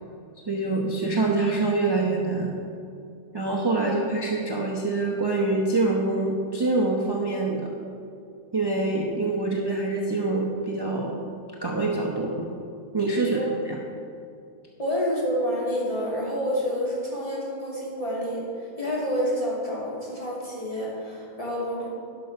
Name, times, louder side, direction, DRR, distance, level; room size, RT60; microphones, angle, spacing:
voice 1, 0.5-2.5 3.3-7.7 8.5-11.1 11.6-12.4 12.9-13.4 13.6-13.8, right 3 dB, 25° right, -2 dB, 0.5 m, -25 dB
voice 2, 14.8-21.9, equal, 20° left, -6 dB, 2.5 m, -28 dB
11.0 x 6.3 x 5.6 m, 2.5 s
omnidirectional pair, 1.8 m